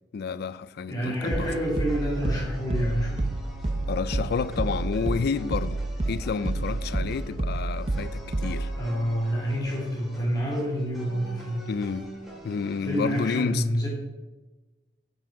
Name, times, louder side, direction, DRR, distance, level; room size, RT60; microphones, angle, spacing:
voice 1, 0.1-1.5 3.9-5.8 6.1-8.7 11.7-12.1 12.4-13.7, left 5 dB, 60° left, 0.4 m, -30 dB
voice 2, 0.9-3.2 8.7-11.6 12.8-13.9, equal, 20° left, 2.0 m, -28 dB
sound 1, 1.2-13.4, equal, ahead, 2.2 m, -44 dB
sound 2, 1.3-8.8, right 2 dB, 35° right, 0.6 m, -29 dB
7.2 x 5.8 x 5.0 m
head